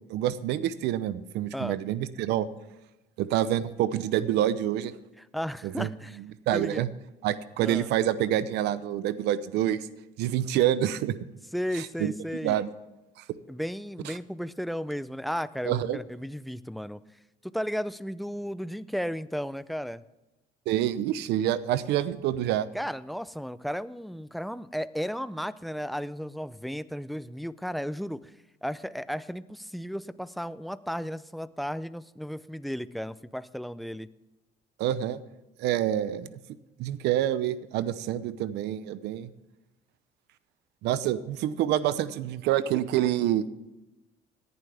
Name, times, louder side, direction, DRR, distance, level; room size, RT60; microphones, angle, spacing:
voice 1, 0.1-2.5 3.2-4.9 5.6-5.9 6.5-6.9 7.2-9.9 10.2-11.1 11.7-12.1 12.4-12.7 13.2-13.3 15.6-16.0 20.7-22.7 34.8-35.2 35.6-36.4 36.8-39.3 40.8-43.5, right 12 dB, 85° right, 15 dB, 0.8 m, -27 dB
voice 2, 5.2-6.2 6.5-6.9 7.6-7.9 11.5-12.6 13.5-17.0 17.5-20.0 22.7-28.3 28.6-34.1, equal, ahead, 15 dB, 0.5 m, -34 dB
18.0 x 11.0 x 3.4 m, 1.0 s
cardioid pair, 110°, 17 cm